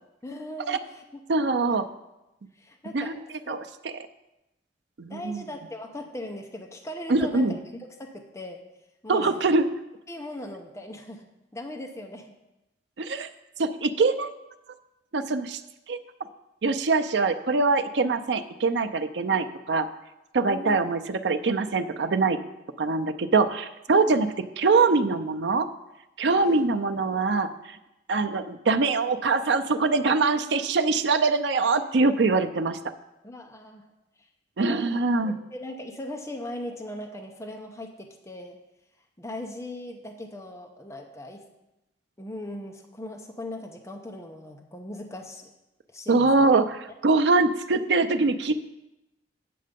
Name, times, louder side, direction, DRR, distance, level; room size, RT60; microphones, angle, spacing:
voice 1, 0.2-1.2 2.6-3.1 3.4-3.6 5.1-8.6 9.0-9.4 10.1-11.3 11.5-12.3 20.5-20.8 23.9-24.3 26.3-26.6 33.2-33.8 34.7-38.6 39.2-41.4 42.2-45.5 45.9-46.5, left 1 dB, 15° left, 3 dB, 0.7 m, -39 dB
voice 2, 1.3-1.9 2.9-3.1 3.5-3.6 5.0-5.4 7.1-7.6 9.1-9.7 13.0-13.3 13.6-14.3 15.1-15.6 15.9-16.0 16.6-19.9 20.3-22.4 22.8-25.7 26.2-27.8 28.1-32.8 34.6-35.4 46.1-48.5, right 3 dB, 70° right, 9 dB, 0.5 m, -23 dB
8.5 x 6.5 x 5.2 m, 0.94 s
head